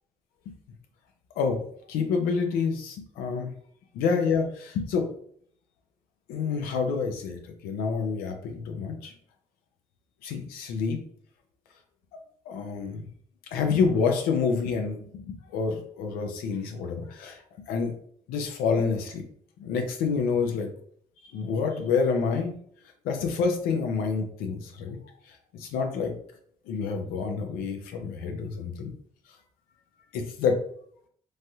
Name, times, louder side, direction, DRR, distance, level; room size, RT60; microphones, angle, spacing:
voice 1, 1.9-3.5 4.0-5.1 6.3-9.1 10.2-11.0 12.5-13.0 13.5-17.4 17.7-17.9 18.3-19.2 19.6-20.7 21.3-22.6 23.0-25.0 25.3-26.1 26.7-28.9 30.1-30.6, left 5 dB, 85° left, 4 dB, 0.5 m, -28 dB
3.2 x 2.7 x 2.2 m, 0.62 s
supercardioid pair, 60°, 15 cm